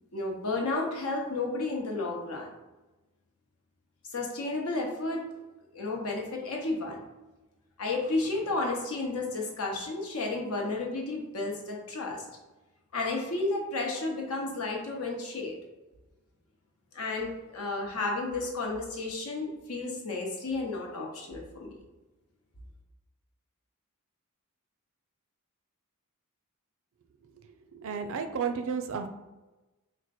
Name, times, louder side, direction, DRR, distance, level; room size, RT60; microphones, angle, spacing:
voice 1, 0.1-2.5 4.1-5.2 5.7-7.0 7.8-12.2 12.9-15.5 16.9-21.7, left 3 dB, 70° left, 0 dB, 0.9 m, -32 dB
voice 2, 27.3-29.1, right 6 dB, 65° right, 6 dB, 0.4 m, -33 dB
4.4 x 2.1 x 4.2 m, 1.1 s
head